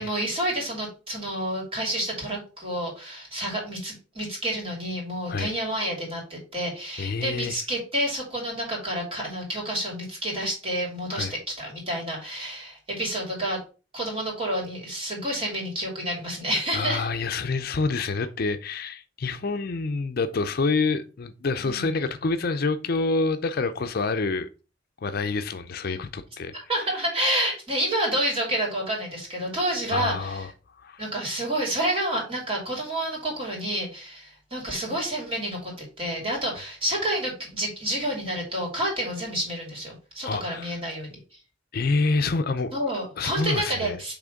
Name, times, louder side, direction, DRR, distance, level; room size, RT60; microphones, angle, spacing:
voice 1, 0.0-13.6 13.9-17.1 21.6-21.9 26.5-30.4 31.0-41.2 42.7-44.1, right 1 dB, 30° right, 2.9 m, -29 dB
voice 2, 7.0-7.6 11.1-11.3 16.7-24.5 25.0-26.5 29.9-30.5 30.8-31.0 40.2-40.8 41.7-42.7 43.2-44.0, left 3 dB, 55° left, 0.5 m, -27 dB
6.0 x 3.5 x 5.1 m
head